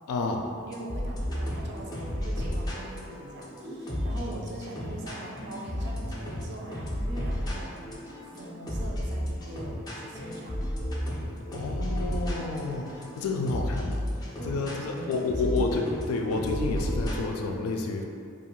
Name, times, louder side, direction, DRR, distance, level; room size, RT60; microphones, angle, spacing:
voice 1, 0.1-0.4 11.5-18.0, left 3 dB, 90° left, 2 dB, 0.3 m, -30 dB
sound 1, 0.7-17.3, equal, 20° left, 0.4 m, -33 dB
voice 2, 0.7-7.7 8.3-10.6 14.4-15.6, right 1 dB, 55° right, -2 dB, 0.4 m, -42 dB
2.4 x 2.3 x 3.0 m, 2.4 s
head